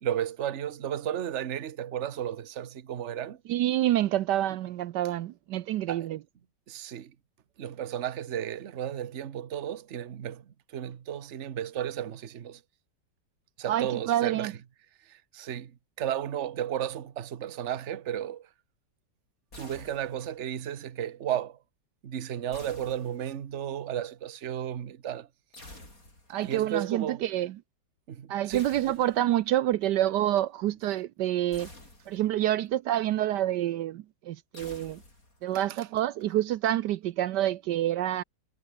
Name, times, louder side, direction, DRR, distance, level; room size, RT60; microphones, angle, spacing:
voice 1, 0.0-3.4 5.9-6.1 6.7-7.1 7.6-12.6 13.6-14.5 15.1-18.5 19.6-21.6 22.0-25.3 26.4-27.2 28.1-28.6 35.5-35.6, right 10 dB, 45° right, 1.2 m, -34 dB
voice 2, 3.5-6.2 13.7-14.5 26.3-27.6 28.3-31.7 32.1-35.0 35.4-38.2, right 13 dB, 75° right, 1.2 m, -27 dB
sound 1, 19.5-20.5 22.5-23.6 25.5-26.5 28.5-29.5 31.5-32.5 34.5-35.5, left 1 dB, 50° left, 8.7 m, -50 dB
omnidirectional pair, 1.9 m